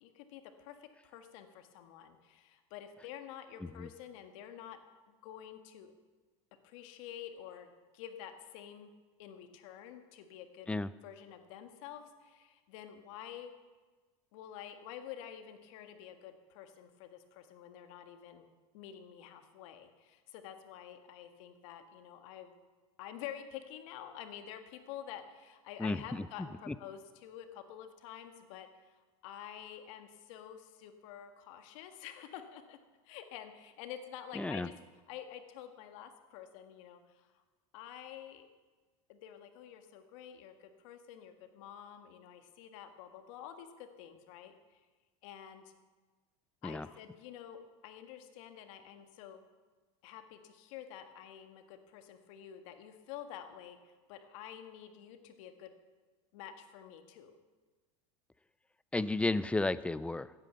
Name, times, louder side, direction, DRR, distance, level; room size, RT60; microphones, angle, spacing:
voice 1, 0.0-4.8 5.1-5.9 6.6-8.9 9.2-10.7 11.0-13.5 14.3-18.5 18.7-22.5 23.0-28.9 29.2-32.8 33.0-34.7 35.1-37.2 37.7-38.5 39.1-44.5 45.2-45.7 46.6-49.4 50.0-53.8 54.1-55.7 56.3-57.3, left 10 dB, 70° left, 7 dB, 1.7 m, -49 dB
voice 2, 25.8-26.7 34.3-34.7 46.6-46.9 58.9-60.3, left 2 dB, 5° left, 16 dB, 0.5 m, -33 dB
15.0 x 9.5 x 6.9 m, 1.3 s
hypercardioid pair, 95°, 17 cm